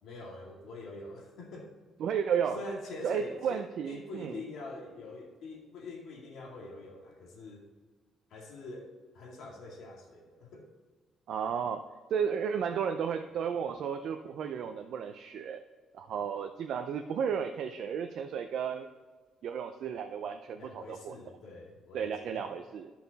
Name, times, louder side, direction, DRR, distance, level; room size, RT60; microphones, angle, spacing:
voice 1, 0.0-1.7 2.5-7.6 8.3-10.7 20.6-22.5, left 2 dB, 60° left, -1 dB, 2.2 m, -45 dB
voice 2, 2.0-2.6 3.0-4.4 11.3-11.8 12.1-15.6 15.9-18.9 19.4-21.2 21.9-22.9, right 7 dB, 55° right, 6 dB, 0.5 m, -33 dB
13.5 x 5.8 x 4.1 m, 1.4 s
cardioid pair, 175°, 0 cm